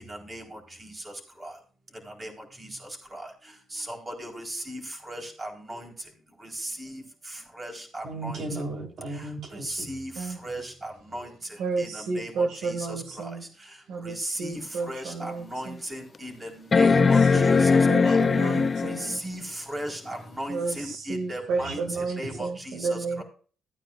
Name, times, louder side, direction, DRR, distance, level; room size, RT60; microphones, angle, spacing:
voice 1, 3.8-4.8 5.1-5.9 6.8-6.9 7.6-8.4 9.6-10.1 10.4-11.3 11.8-11.9 12.2-12.7 14.0-14.6 14.9-16.5 16.7-18.1 18.8-18.9 19.2-19.4 19.7-21.8 22.2-22.8 23.2-23.3, right 1 dB, 25° right, 1 dB, 4.1 m, -36 dB
voice 2, 8.0-9.9 21.5-22.5, right 2 dB, 55° right, 2 dB, 3.8 m, -36 dB
voice 3, 11.6-13.4 13.9-15.8 16.8-17.6 17.9-19.1 20.5-23.2, right 4 dB, 80° right, 3 dB, 1.8 m, -32 dB
sound 1, 14.6-14.7 15.2-15.3 16.7-19.2 20.9-21.0, left 5 dB, 35° left, 0.4 m, -20 dB
16.0 x 9.2 x 2.5 m, 0.41 s
cardioid pair, 90°, 0 cm